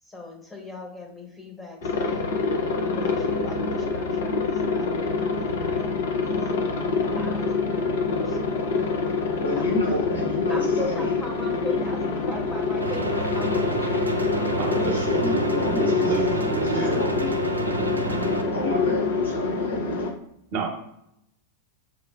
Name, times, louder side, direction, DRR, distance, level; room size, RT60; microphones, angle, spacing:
voice 1, 0.0-6.9 7.2-9.2 9.5-10.1 10.5-13.8, left 1 dB, 10° left, 0 dB, 1.1 m, -40 dB
Aircraft, 1.8-20.1, left 4 dB, 60° left, 0.6 m, -26 dB
voice 2, 9.4-11.2 14.7-16.1 16.6-17.3 18.5-20.1, left 1 dB, 80° left, -3 dB, 1.1 m, -30 dB
sound 1, 12.8-18.4, right 3 dB, 80° right, 0.3 m, -30 dB
voice 3, 14.6-17.1 17.5-17.8 20.5-20.7, right 3 dB, 45° right, 0 dB, 0.9 m, -30 dB
6.0 x 2.1 x 2.3 m, 0.77 s
figure-of-eight pair, 90°, 0 cm